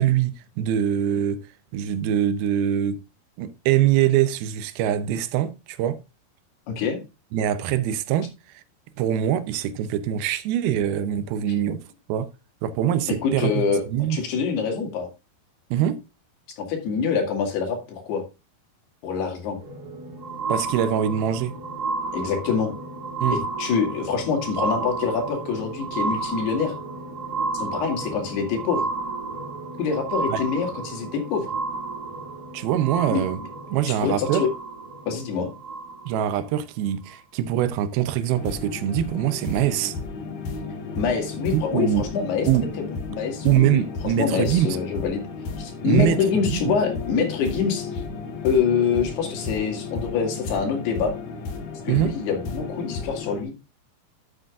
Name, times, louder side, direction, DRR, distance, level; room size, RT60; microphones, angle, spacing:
voice 1, 0.0-1.4 1.7-3.0 3.4-6.0 7.3-8.3 9.0-11.8 12.1-12.3 12.6-13.6 13.9-14.2 15.7-16.0 20.5-21.5 23.2-23.4 30.3-30.4 32.5-33.4 33.7-34.5 36.1-39.9 41.5-42.0 42.5-42.7 43.5-44.8 45.8-46.2 46.5-46.8 51.9-52.1, right 11 dB, 80° right, 2.5 m, -23 dB
voice 2, 6.7-7.0 13.2-13.8 14.1-15.1 16.6-18.2 19.0-19.6 22.1-22.7 23.6-26.7 27.6-28.9 29.8-31.5 33.1-33.2 33.9-34.5 35.1-35.5 41.0-42.5 42.8-43.8 44.2-45.2 45.6-47.9 48.4-51.1 51.9-53.5, left 6 dB, 85° left, 4.2 m, -25 dB
sound 1, 19.5-36.4 37.1-37.2, right 3 dB, 50° right, 1.2 m, -32 dB
sound 2, 38.4-53.4, left 4 dB, 60° left, 3.1 m, -33 dB
12.0 x 7.7 x 2.4 m
omnidirectional pair, 4.5 m